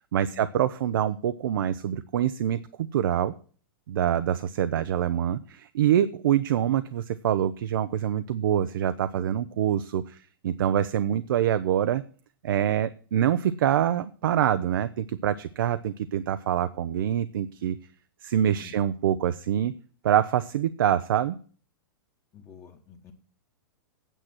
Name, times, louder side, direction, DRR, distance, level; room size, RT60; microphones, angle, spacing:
voice 1, 0.1-2.6 2.9-3.3 3.9-10.2 10.4-12.0 12.4-17.8 18.2-19.7 20.0-21.4, right 10 dB, 70° right, 12 dB, 0.6 m, -25 dB
voice 2, 22.3-23.1, left 7 dB, 25° left, 4 dB, 1.2 m, -48 dB
9.1 x 6.0 x 7.9 m, 0.41 s
hypercardioid pair, 135°, 12 cm